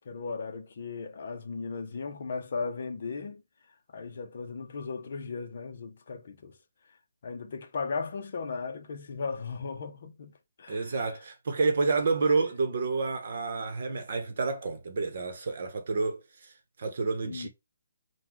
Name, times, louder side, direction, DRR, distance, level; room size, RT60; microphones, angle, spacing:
voice 1, 0.0-3.4 3.9-6.5 7.2-11.1 17.2-17.5, left 4 dB, 45° left, 0.6 m, -37 dB
voice 2, 10.7-16.5 16.8-17.5, right 4 dB, 45° right, 0.9 m, -29 dB
3.8 x 2.2 x 4.5 m
hypercardioid pair, 170°, 0 cm